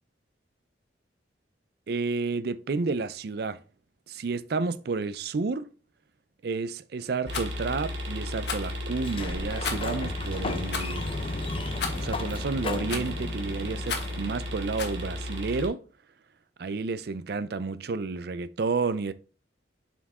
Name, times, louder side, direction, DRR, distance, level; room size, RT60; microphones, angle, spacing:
voice 1, 1.9-3.6 4.1-5.7 6.4-11.1 12.0-15.8 16.6-19.1, right 4 dB, 55° right, 0.4 m, -31 dB
Rattle, 7.3-7.5 8.4-8.7 9.6-10.0 10.7-10.9 11.8-12.1 12.9-13.2 13.9-14.2 14.8-15.0, left 5 dB, 65° left, 1.2 m, -33 dB
sound 1, 7.3-15.7, left 1 dB, 80° right, 2.0 m, -34 dB
Sliding door, 9.0-14.6, left 2 dB, 30° left, 0.5 m, -36 dB
6.9 x 4.4 x 3.6 m
head